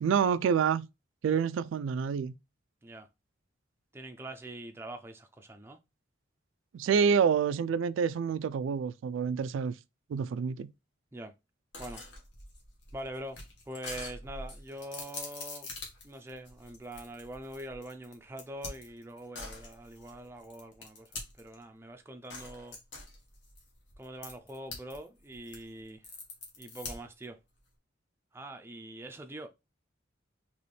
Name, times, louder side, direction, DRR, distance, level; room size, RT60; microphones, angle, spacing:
voice 1, 0.0-0.9 1.2-2.3 6.7-9.7 10.1-10.7, right 6 dB, 85° right, 0.3 m, -27 dB
voice 2, 3.9-5.8 11.1-11.3 11.8-12.0 12.9-13.4 13.7-15.7 16.0-21.1 21.4-22.8 24.0-26.1 26.6-27.4 28.3-29.5, right 1 dB, 10° right, 0.4 m, -44 dB
sound 1, 11.7-21.6 22.3-25.0 25.3-27.2, left 3 dB, 70° left, 1.5 m, -44 dB
4.2 x 3.0 x 3.2 m
head